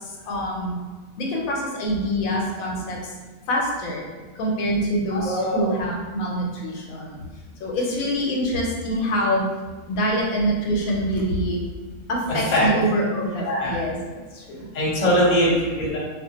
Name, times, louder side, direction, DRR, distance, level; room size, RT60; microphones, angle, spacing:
voice 1, 0.3-0.8 1.2-3.1 3.5-4.0 4.4-7.2 7.6-9.5 9.9-11.6 12.1-14.0 14.3-14.7, equal, 85° left, -1 dB, 1.0 m, -25 dB
voice 2, 5.1-5.7 12.3-12.7 13.4-13.8 14.7-16.0, equal, 40° left, -6 dB, 0.8 m, -22 dB
2.4 x 2.1 x 2.8 m, 1.4 s
omnidirectional pair, 1.4 m